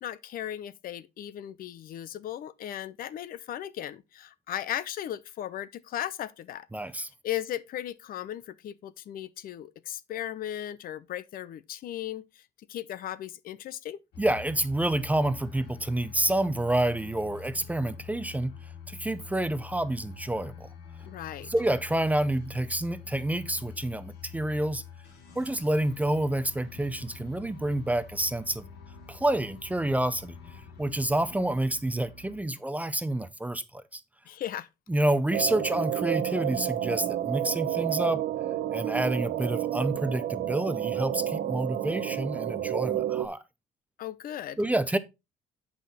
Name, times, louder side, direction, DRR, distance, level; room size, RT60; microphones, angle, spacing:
voice 1, 0.0-6.7 7.2-12.4 12.7-14.0 21.0-21.5 34.3-34.7 44.0-44.6, left 11 dB, 60° left, 0.6 m, -36 dB
voice 2, 6.7-7.1 14.2-18.5 18.9-20.7 21.5-24.8 25.4-28.7 29.1-30.4 30.8-34.0 34.9-38.2 38.7-43.4 44.6-45.0, right 1 dB, 10° right, 0.5 m, -28 dB
sound 1, 14.1-32.4, left 7 dB, 75° left, 2.4 m, -46 dB
sound 2, 35.3-43.3, right 12 dB, 65° right, 0.9 m, -30 dB
7.5 x 5.7 x 4.1 m
cardioid pair, 110°, 17 cm